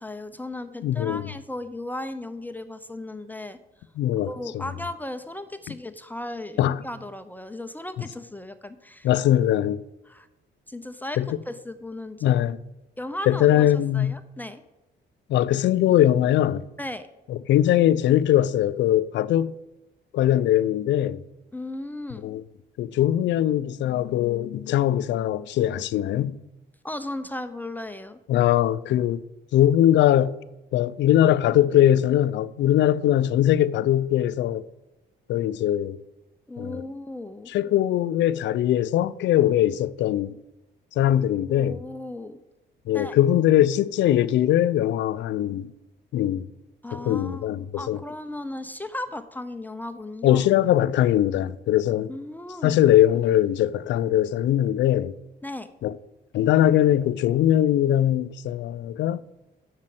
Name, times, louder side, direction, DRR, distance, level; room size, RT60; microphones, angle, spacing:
voice 1, 0.0-3.6 4.3-9.1 10.1-10.3 10.7-11.2 11.5-12.4 13.0-14.6 16.8-17.1 21.5-22.3 26.8-28.2 36.5-37.5 41.5-42.4 42.9-43.2 46.8-50.4 52.1-52.7 55.4-55.7, left 1 dB, 10° left, 0.6 m, -36 dB
voice 2, 0.8-1.3 4.0-4.6 6.6-6.8 9.0-9.8 11.2-11.4 12.2-12.6 13.3-14.2 15.3-16.7 17.3-19.5 20.1-21.2 22.2-22.4 22.8-26.4 28.3-29.2 29.5-30.4 30.7-34.6 35.3-36.0 36.6-36.8 37.5-40.3 41.0-41.8 42.9-45.7 46.1-46.4 46.9-48.0 50.2-52.1 52.6-55.1 55.8-55.9 56.3-59.2, left 12 dB, 75° left, 0.5 m, -21 dB
7.5 x 6.5 x 7.6 m
cardioid pair, 100°, 19 cm